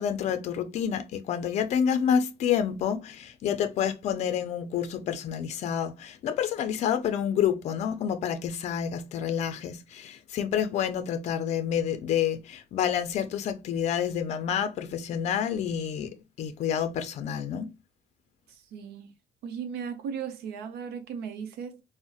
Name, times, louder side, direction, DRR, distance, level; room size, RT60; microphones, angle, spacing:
voice 1, 0.0-17.7, left 8 dB, 45° left, 0.5 m, -28 dB
voice 2, 18.5-19.1 19.4-21.8, right 7 dB, 70° right, 0.7 m, -37 dB
3.9 x 2.1 x 2.3 m
cardioid pair, 165°, 17 cm